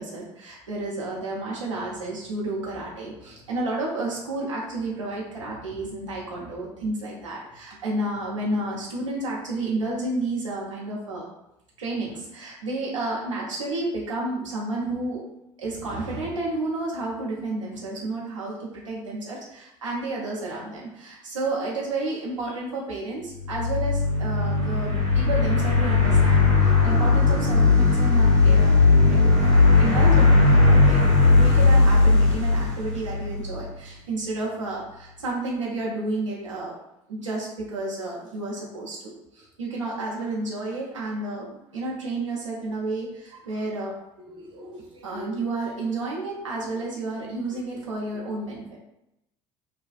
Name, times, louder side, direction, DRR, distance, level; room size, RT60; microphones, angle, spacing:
voice 1, 0.0-11.2 11.8-15.2 15.6-28.8 29.0-29.3 29.8-36.7 37.1-43.9 45.0-48.8, right 2 dB, 80° right, -4 dB, 0.8 m, -31 dB
sound 1, 23.4-33.6, left 3 dB, 90° left, 1.4 m, -18 dB
voice 2, 44.3-45.4, equal, 30° right, 0 dB, 0.6 m, -41 dB
3.4 x 2.3 x 2.4 m, 0.85 s
figure-of-eight pair, 65°, 16 cm